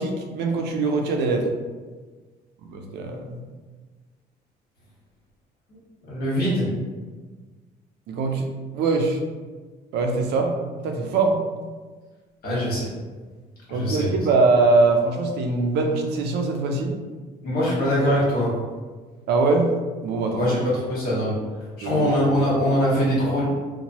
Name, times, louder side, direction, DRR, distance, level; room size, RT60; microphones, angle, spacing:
voice 1, 0.0-1.5 2.6-3.4 8.1-8.5 8.7-9.2 9.9-10.5 10.8-11.4 13.7-16.9 19.3-19.7 20.0-20.5 21.8-22.1, right 3 dB, 80° right, 3 dB, 0.5 m, -22 dB
voice 2, 6.1-6.7 12.4-12.9 13.7-14.1 17.4-18.5 20.4-21.3 21.8-23.5, equal, 65° left, -7 dB, 1.4 m, -22 dB
2.9 x 2.2 x 2.7 m, 1.4 s
cardioid pair, 110°, 17 cm